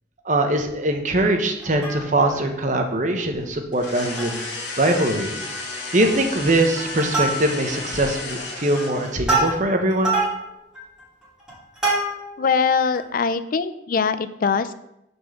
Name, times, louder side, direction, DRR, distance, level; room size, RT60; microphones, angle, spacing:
voice 1, 0.2-4.4 4.8-5.4 5.9-10.2, right 1 dB, 45° right, 4 dB, 1.0 m, -22 dB
Plucked string instrument, 1.6-2.4 2.8-2.9 3.2-3.4 3.9-4.5 4.8-4.9 5.3-5.7 6.0-6.4 6.8-7.8 8.3-12.4 13.0-13.1, right 2 dB, 5° right, 3.0 m, -26 dB
sound 1, 3.7-9.3, left 3 dB, 70° left, 1.7 m, -33 dB
voice 2, 12.4-14.7, left 5 dB, 50° left, 13 dB, 0.4 m, -22 dB
6.6 x 4.5 x 6.5 m, 0.86 s
head